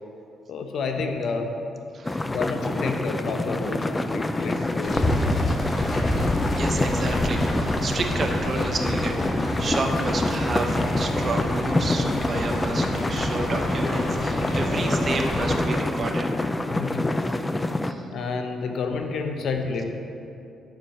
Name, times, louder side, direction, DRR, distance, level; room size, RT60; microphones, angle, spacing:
voice 1, 0.5-1.5 2.3-5.1 16.7-17.1 18.1-19.8, left 4 dB, 65° left, 4 dB, 0.8 m, -29 dB
voice 2, 1.9-2.3 4.6-4.7 5.2-5.5 6.5-16.3 17.2-17.4 17.8-18.0, right 3 dB, 40° right, 3 dB, 0.8 m, -31 dB
sound 1, 2.1-17.9, left 2 dB, 15° left, 0.4 m, -26 dB
sound 2, 4.8-15.6, left 1 dB, 35° left, 1.5 m, -28 dB
7.4 x 5.1 x 5.6 m, 2.7 s
cardioid pair, 90°, 0 cm